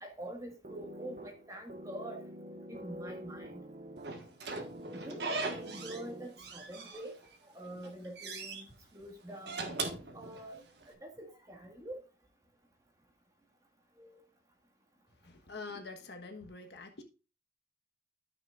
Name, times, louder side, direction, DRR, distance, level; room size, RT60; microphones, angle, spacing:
voice 1, 0.0-2.2 2.7-3.6 4.9-8.7 8.9-9.7 10.1-10.6 10.9-12.0 14.0-14.2, right 1 dB, 15° right, 1.7 m, -45 dB
sound 1, 0.6-6.6, equal, 40° right, 0.8 m, -47 dB
Slam / Squeak, 4.0-6.1 6.4-7.4 7.7-8.6 9.3-10.8, right 3 dB, 60° right, 1.5 m, -40 dB
voice 2, 15.2-17.0, left 3 dB, 60° left, 1.3 m, -46 dB
13.5 x 6.2 x 2.5 m
head